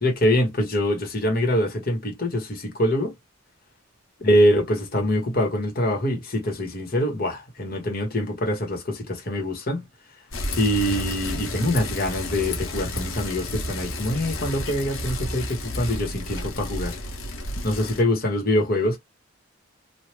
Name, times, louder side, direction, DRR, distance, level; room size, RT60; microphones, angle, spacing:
voice 1, 0.0-3.1 4.2-9.8 10.6-17.0 17.6-19.0, left 1 dB, 45° left, 1.2 m, -24 dB
Bicycle, 10.3-18.0, left 1 dB, 70° left, 0.9 m, -31 dB
3.3 x 2.4 x 2.9 m
head